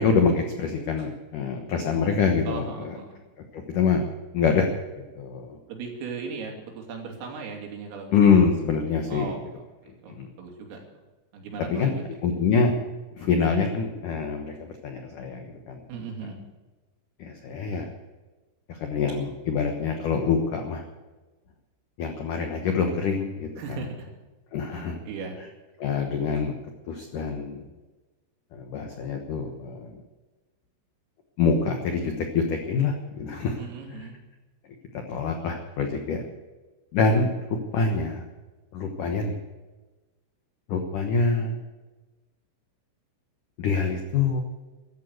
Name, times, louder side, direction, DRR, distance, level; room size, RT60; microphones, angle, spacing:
voice 1, 0.0-3.0 3.5-4.0 4.3-4.7 5.0-5.6 8.1-9.3 10.2-10.3 11.7-12.0 12.2-12.7 13.1-15.8 16.2-16.3 17.2-17.9 18.7-20.8 22.0-23.8 24.5-25.0 25.8-26.5 26.9-27.6 28.5-30.0 31.4-33.6 33.9-34.1 34.9-36.2 36.9-38.2 38.7-39.3 40.7-41.5 43.6-44.4, left 5 dB, 85° left, 4 dB, 1.8 m, -25 dB
voice 2, 2.5-3.2 5.7-8.1 9.1-9.4 10.0-10.8 11.3-12.0 15.9-16.4 23.6-24.1 24.7-25.4 33.6-34.2, right 4 dB, 80° right, 2 dB, 5.3 m, -37 dB
15.0 x 11.5 x 8.0 m, 1.2 s
omnidirectional pair, 5.9 m